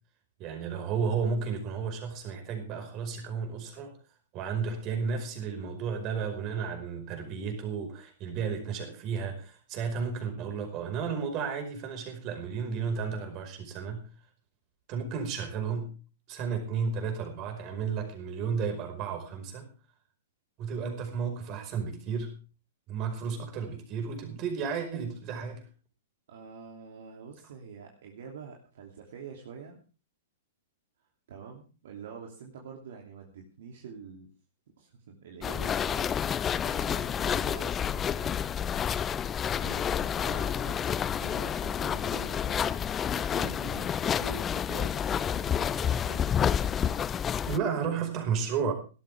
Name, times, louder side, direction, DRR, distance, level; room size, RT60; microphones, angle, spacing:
voice 1, 0.4-3.9 4.3-14.1 14.9-15.9 16.3-19.7 20.6-22.3 22.9-25.6 47.4-48.7, right 6 dB, 35° right, 5 dB, 5.1 m, -33 dB
voice 2, 26.3-29.8 31.3-34.3 34.8-38.5 39.6-42.6 43.1-46.3, right 6 dB, 60° right, 1 dB, 2.8 m, -46 dB
sound 1, 35.4-47.6, left 8 dB, 20° left, 0.6 m, -29 dB
17.5 x 13.0 x 3.5 m, 0.35 s
figure-of-eight pair, 110°, 0 cm